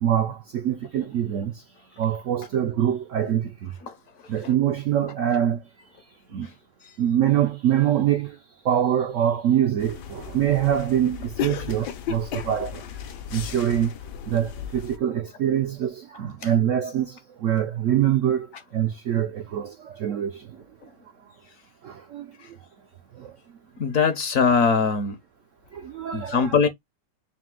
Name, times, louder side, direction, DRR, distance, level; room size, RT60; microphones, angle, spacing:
voice 1, 0.0-1.6 2.0-3.8 4.3-5.6 6.3-6.5 7.0-8.4 8.6-12.8 13.3-13.9 14.3-20.6 21.8-22.6 23.1-23.4 25.7-26.5, right 10 dB, 70° right, 0.7 m, -24 dB
sound 1, 9.8-15.0, left 9 dB, 75° left, 1.3 m, -35 dB
voice 2, 23.8-25.2 26.1-26.7, left 5 dB, 60° left, 1.0 m, -21 dB
4.2 x 2.6 x 3.6 m
omnidirectional pair, 1.8 m